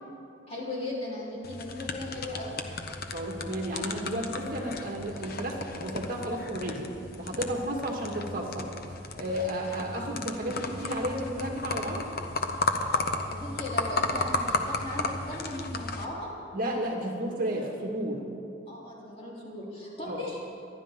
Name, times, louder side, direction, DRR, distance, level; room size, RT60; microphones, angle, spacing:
voice 1, 0.5-2.6 12.9-13.0 13.3-16.3 18.7-20.4, left 1 dB, 35° left, -6 dB, 4.1 m, -37 dB
sound 1, 1.4-16.0, left 3 dB, 55° left, 1.0 m, -34 dB
voice 2, 3.1-6.9 7.2-8.7 9.2-12.1 16.5-18.3 20.1-20.2, right 1 dB, 50° right, 0 dB, 2.0 m, -32 dB
26.0 x 11.0 x 3.8 m, 2.6 s
head